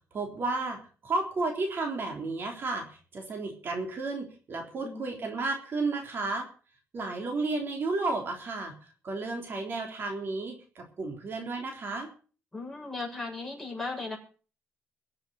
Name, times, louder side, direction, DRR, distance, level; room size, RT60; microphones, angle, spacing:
voice 1, 0.1-0.8 1.0-6.5 6.9-8.7 9.0-12.1, right 3 dB, 50° right, 2 dB, 3.5 m, -32 dB
voice 2, 12.5-14.2, left 3 dB, 5° left, -2 dB, 6.8 m, -36 dB
22.5 x 7.5 x 6.4 m, 0.40 s
cardioid pair, 110°, 5 cm